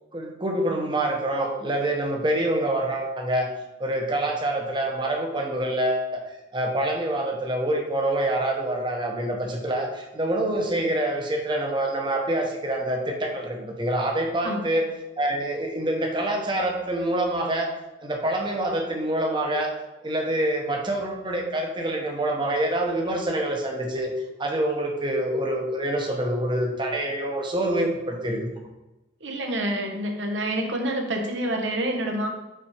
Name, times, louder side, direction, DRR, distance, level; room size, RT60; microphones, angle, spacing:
voice 1, 0.1-3.5 3.8-6.2 6.5-14.9 15.2-17.7 18.0-19.7 20.0-24.1 24.4-28.5, right 1 dB, 25° right, 1 dB, 1.0 m, -26 dB
voice 2, 29.2-32.3, right 1 dB, 70° right, 2 dB, 1.1 m, -27 dB
5.7 x 4.2 x 4.9 m, 1.0 s
head